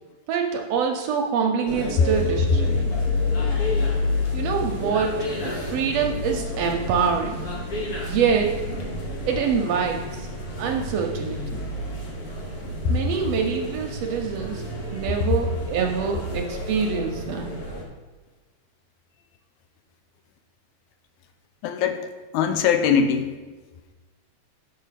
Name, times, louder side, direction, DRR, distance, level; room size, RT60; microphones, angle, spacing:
voice 1, 0.3-3.1 4.3-7.4 8.0-8.6 9.3-10.3 10.6-11.6 12.9-14.6 14.9-17.5, right 6 dB, 75° right, 3 dB, 1.6 m, -25 dB
sound 1, 1.7-17.8, left 2 dB, 45° left, 1.2 m, -29 dB
voice 2, 21.6-23.3, left 6 dB, 85° left, 7 dB, 2.1 m, -21 dB
6.6 x 6.4 x 5.8 m, 1.3 s
omnidirectional pair, 3.4 m